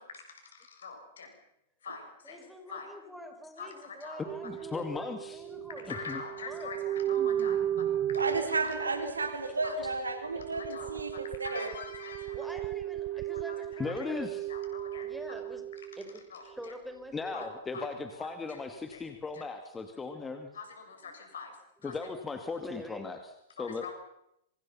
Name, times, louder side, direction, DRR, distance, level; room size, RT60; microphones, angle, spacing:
voice 1, 0.3-1.3 1.8-2.4 2.7-2.9 3.6-4.2 5.9-8.2 8.6-8.7 9.6-9.8 10.5-12.5 13.3-14.0 14.5-15.1 16.3-16.7 17.3-17.5 17.7-17.9 18.1-18.6 18.9-19.0 19.3-19.5 20.5-21.6 21.8-21.9 23.6-23.9, left 5 dB, 75° left, 4 dB, 7.2 m, -44 dB
voice 2, 2.2-5.9 6.4-6.7 12.3-14.3 15.0-15.6 16.0-17.5 20.4-20.5 22.6-23.1, equal, ahead, 5 dB, 5.3 m, -45 dB
sound 1, 4.3-16.2 16.6-16.7, right 11 dB, 35° right, 0.9 m, -35 dB
voice 3, 4.4-5.4 5.9-6.2 13.8-14.4 17.1-20.5 21.8-23.2 23.6-23.9, left 4 dB, 15° left, 6 dB, 2.5 m, -37 dB
voice 4, 8.1-11.7, right 3 dB, 85° right, 7 dB, 3.7 m, -33 dB
26.5 x 25.5 x 5.9 m, 0.79 s
figure-of-eight pair, 105°, 0 cm